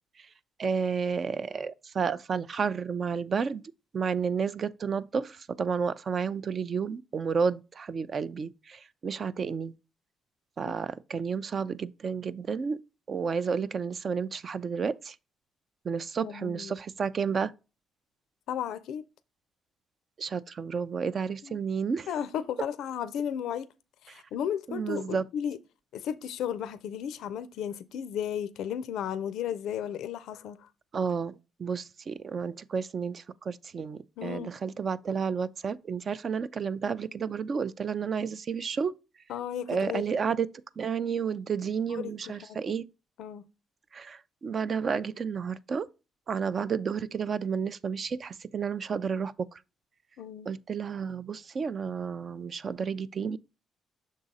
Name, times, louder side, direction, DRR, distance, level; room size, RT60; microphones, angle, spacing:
voice 1, 0.6-3.6 3.9-9.7 10.6-12.8 13.1-15.2 15.8-17.5 20.2-22.1 24.1-24.2 24.7-25.2 30.9-39.0 39.7-40.5 40.8-42.8 43.9-45.9 46.3-49.6 50.5-53.4, right 6 dB, 45° right, 0.4 m, -31 dB
voice 2, 16.2-16.7 18.5-19.0 21.4-21.6 22.1-23.7 24.0-25.6 25.9-30.7 34.2-34.5 39.3-40.0 41.9-42.6 43.2-43.4 50.2-50.5, left 9 dB, 80° left, 0.4 m, -34 dB
6.3 x 3.8 x 4.0 m
cardioid pair, 90°, 0 cm